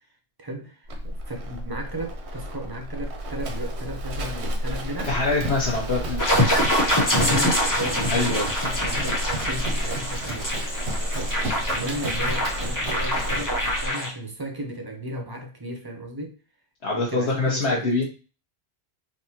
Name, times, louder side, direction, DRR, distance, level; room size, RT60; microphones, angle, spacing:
voice 1, 0.4-5.2 6.4-16.4 16.9-18.0, right 1 dB, 30° right, 0.5 m, -35 dB
Livestock farm animals working animals, 0.9-13.9, equal, 85° right, 1.1 m, -31 dB
voice 2, 5.1-6.2 8.1-8.5 16.8-18.0, left 3 dB, 80° left, 1.1 m, -24 dB
sound 1, 6.2-14.1, left 1 dB, 20° left, 0.7 m, -25 dB
3.9 x 2.6 x 2.8 m
omnidirectional pair, 1.1 m